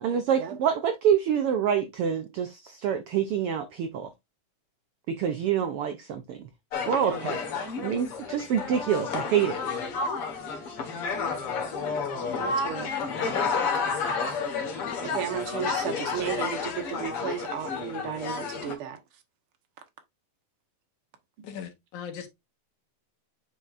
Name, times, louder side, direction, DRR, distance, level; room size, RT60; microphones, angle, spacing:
voice 1, 0.0-4.1 5.1-6.5 6.8-7.4 7.8-9.6, right 8 dB, 80° right, 1.3 m, -26 dB
sound 1, 6.7-18.8, left 5 dB, 55° left, 2.2 m, -31 dB
voice 2, 12.4-12.9 15.0-19.0, right 8 dB, 55° right, 1.9 m, -34 dB
voice 3, 21.4-22.3, left 8 dB, 75° left, 2.8 m, -39 dB
8.1 x 5.2 x 2.5 m
omnidirectional pair, 3.5 m